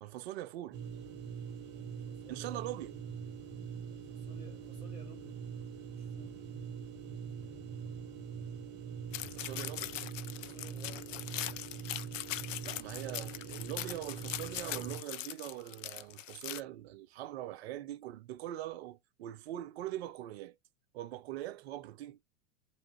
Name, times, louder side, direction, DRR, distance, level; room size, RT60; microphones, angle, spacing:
voice 1, 0.0-0.8 2.3-3.0 9.2-9.9 12.6-20.6 20.9-22.2, right 14 dB, 50° right, 0.5 m, -42 dB
sound 1, 0.7-15.0, right 7 dB, 25° right, 0.8 m, -43 dB
voice 2, 1.7-2.6 3.9-5.4 5.9-6.4 10.3-11.7, left 3 dB, 5° right, 1.9 m, -57 dB
sound 2, 9.1-16.6, left 13 dB, 70° left, 0.5 m, -41 dB
3.4 x 2.8 x 2.8 m
figure-of-eight pair, 95°, 40 cm